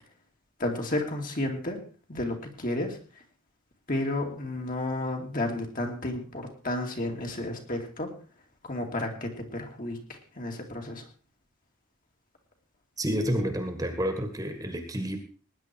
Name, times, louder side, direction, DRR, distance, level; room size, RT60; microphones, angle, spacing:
voice 1, 0.6-1.8 2.1-3.0 3.9-8.1 8.6-11.0, left 1 dB, 40° left, 2 dB, 2.8 m, -32 dB
voice 2, 13.0-15.2, equal, 15° right, 6 dB, 1.9 m, -29 dB
19.5 x 10.5 x 4.6 m, 0.39 s
head